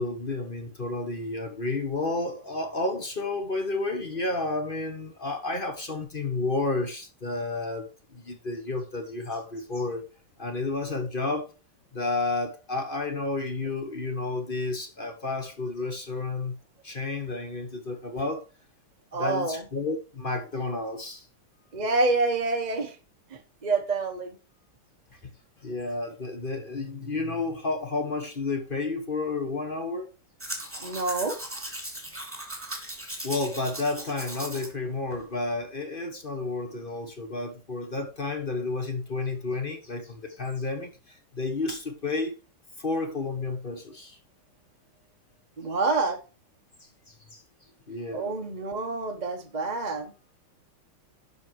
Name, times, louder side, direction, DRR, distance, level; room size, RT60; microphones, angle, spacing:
voice 1, 0.0-10.0 10.4-11.5 11.9-16.6 16.8-18.5 19.2-21.3 25.2-25.3 25.6-30.1 33.2-42.4 42.8-44.2 47.1-47.4 47.9-48.3, left 3 dB, 30° left, 1.1 m, -31 dB
voice 2, 19.1-19.6 21.7-23.0 23.3-24.4 30.8-31.4 45.6-46.2 48.1-50.1, right 3 dB, 30° right, 0.8 m, -27 dB
Domestic sounds home sounds, 30.4-34.7 35.1-35.2, right 1 dB, 5° right, 2.3 m, -38 dB
11.5 x 5.1 x 4.7 m
omnidirectional pair, 2.2 m